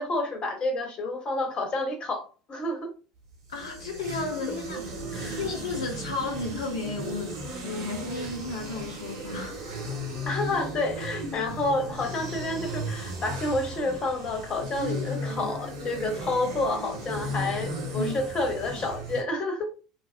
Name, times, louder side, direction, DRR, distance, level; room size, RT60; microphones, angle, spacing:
voice 1, 0.0-2.9 5.1-5.4 10.3-19.7, left 2 dB, 35° left, 0.8 m, -29 dB
sound 1, 3.3-19.2, equal, 65° right, 1.0 m, -35 dB
voice 2, 3.5-4.8 5.4-7.4 7.6-9.6 17.9-18.1, left 3 dB, 70° left, 0.5 m, -33 dB
2.6 x 2.1 x 2.2 m
figure-of-eight pair, 70°, 3 cm